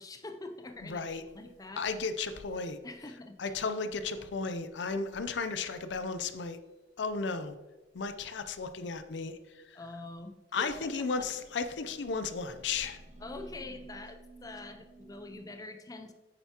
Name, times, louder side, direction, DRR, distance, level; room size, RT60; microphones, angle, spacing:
voice 1, 0.0-1.1 1.3-1.8 2.8-3.5 4.2-4.3 9.7-10.7 11.2-11.3 13.2-16.1, left 2 dB, 20° left, 6 dB, 0.5 m, -45 dB
voice 2, 0.8-1.2 1.8-2.8 3.4-6.6 7.0-7.5 7.9-9.8 10.5-13.0, left 4 dB, 70° left, 10 dB, 0.5 m, -34 dB
sound 1, 10.6-15.6, right 2 dB, 40° right, 0.8 m, -53 dB
9.1 x 6.8 x 2.9 m, 1.1 s
head